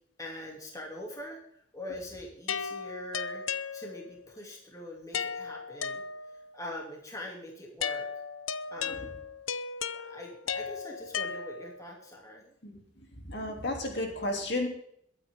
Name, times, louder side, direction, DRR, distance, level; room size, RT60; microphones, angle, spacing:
voice 1, 0.2-8.1 8.7-9.2 9.9-12.5, left 1 dB, 15° left, -1 dB, 3.0 m, -43 dB
sound 1, 2.5-4.3 5.1-6.6 7.8-11.9, left 6 dB, 75° left, 0.7 m, -36 dB
voice 2, 13.2-14.7, left 1 dB, 55° left, 1 dB, 3.3 m, -32 dB
22.5 x 9.5 x 3.8 m, 0.68 s
head